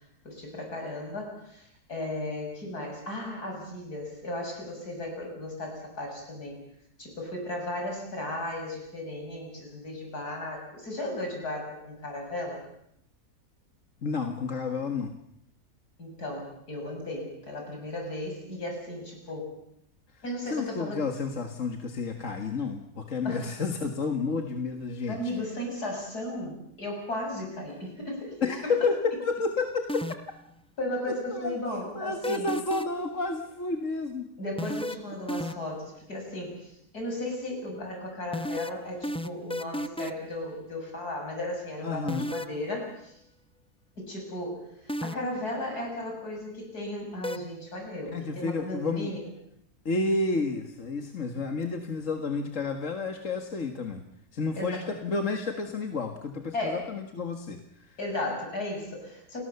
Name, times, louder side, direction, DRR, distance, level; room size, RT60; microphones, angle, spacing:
voice 1, 0.2-6.6 7.0-12.6 16.0-19.5 20.2-21.0 23.2-23.5 25.1-28.7 30.8-32.6 34.4-43.2 44.0-49.2 54.6-54.8 56.5-56.9 58.0-59.4, left 1 dB, 70° left, 1 dB, 7.7 m, -35 dB
voice 2, 14.0-15.1 20.5-25.3 28.4-30.2 31.1-31.5 32.0-34.3 41.8-42.3 48.1-49.1 49.9-54.0 54.3-58.0, left 3 dB, 50° left, 5 dB, 2.0 m, -30 dB
sound 1, 29.9-30.4 32.2-33.1 34.6-35.8 38.3-40.3 42.1-42.6 44.9-45.4 47.2-47.4, left 1 dB, 10° left, 0.3 m, -32 dB
29.5 x 20.0 x 7.0 m, 0.75 s
omnidirectional pair, 1.7 m